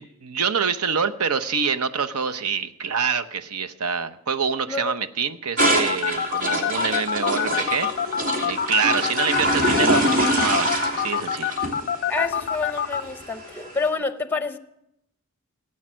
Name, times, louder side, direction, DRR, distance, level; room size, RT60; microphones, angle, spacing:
voice 1, 0.0-11.6, right 6 dB, 85° right, 0.8 m, -26 dB
sound 1, 5.6-13.8, right 1 dB, 60° right, 2.9 m, -25 dB
sound 2, 5.9-13.0, left 9 dB, 50° left, 0.4 m, -25 dB
voice 2, 12.1-14.6, left 4 dB, 10° left, 0.7 m, -28 dB
17.0 x 8.8 x 6.2 m
head